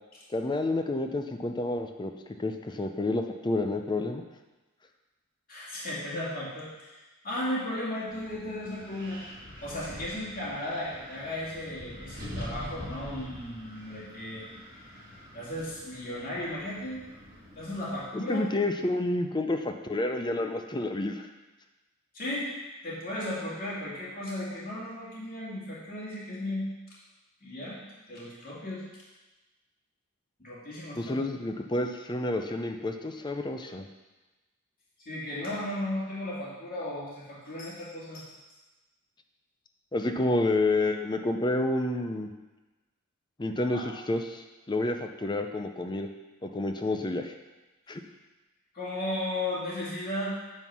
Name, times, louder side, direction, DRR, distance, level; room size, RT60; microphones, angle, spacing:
voice 1, 0.3-2.1 2.4-4.2 18.1-21.3 31.0-33.9 39.9-42.3 43.4-46.1 46.4-47.3 47.9-48.0, left 2 dB, 20° left, 5 dB, 0.5 m, -29 dB
voice 2, 5.5-7.0 7.2-9.2 9.6-14.5 15.3-17.0 17.6-18.4 22.1-22.5 22.8-26.7 27.4-27.8 28.1-28.8 30.4-31.2 35.1-38.3 43.7-43.9 48.7-50.4, left 1 dB, 40° left, -8 dB, 2.4 m, -35 dB
Wind, 8.1-18.0, left 1 dB, 20° right, 3.3 m, -45 dB
9.0 x 4.5 x 6.1 m, 1.1 s
head